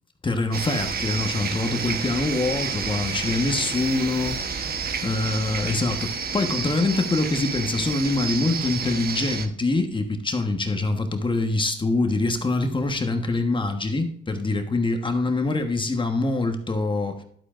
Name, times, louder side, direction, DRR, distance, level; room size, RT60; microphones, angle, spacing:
voice 1, 0.2-4.4 5.0-17.2, left 2 dB, 25° left, 5 dB, 1.3 m, -24 dB
sound 1, 0.5-9.5, right 6 dB, 50° right, 1.1 m, -30 dB
11.5 x 8.3 x 2.6 m, 0.66 s
cardioid pair, 90°, 20 cm